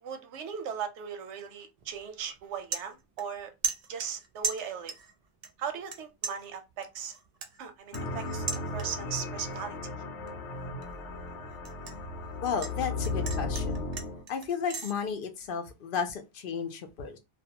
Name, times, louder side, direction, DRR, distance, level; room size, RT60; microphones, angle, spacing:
voice 1, 0.0-3.5 3.9-4.9 5.6-7.1 7.6-8.5 8.7-9.8, right 7 dB, 90° right, 0.9 m, -38 dB
sound 1, 1.8-2.0 2.4-3.4 3.6-5.1 5.4-6.0 6.2-9.2 9.5-9.9 10.3-12.7 13.0-14.9, right 5 dB, 65° right, 0.4 m, -37 dB
sound 2, 7.9-14.2, left 2 dB, 85° left, 0.9 m, -35 dB
voice 2, 12.4-13.9 14.3-17.2, left 6 dB, 60° left, 0.7 m, -33 dB
2.3 x 2.2 x 2.8 m
omnidirectional pair, 1.1 m